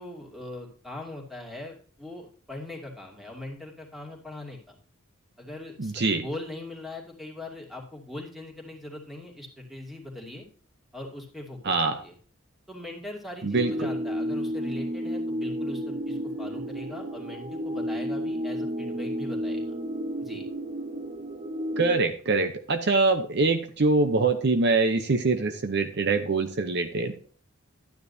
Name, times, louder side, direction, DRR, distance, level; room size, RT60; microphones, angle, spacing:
voice 1, 0.0-4.8 5.4-10.4 10.9-11.7 12.0-12.1 12.7-19.6 20.2-20.4, left 1 dB, ahead, -1 dB, 2.5 m, -40 dB
voice 2, 5.8-6.3 11.6-12.0 13.4-13.9 21.8-27.1, right 3 dB, 55° right, 8 dB, 0.8 m, -24 dB
sound 1, 13.5-22.0, equal, 30° right, 0.8 m, -32 dB
12.5 x 9.6 x 2.7 m, 0.44 s
head